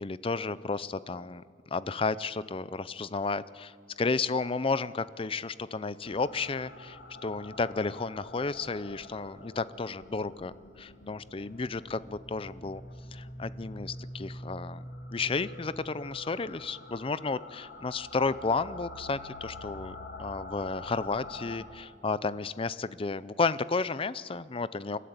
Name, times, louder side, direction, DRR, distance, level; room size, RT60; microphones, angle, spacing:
voice 1, 0.0-1.4 1.7-3.7 4.0-12.8 13.1-14.8 15.1-25.0, left 4 dB, 30° left, 17 dB, 0.5 m, -32 dB
sound 1, 6.0-21.6, left 1 dB, 65° left, 2.1 m, -45 dB
29.0 x 13.0 x 8.2 m, 2.1 s
head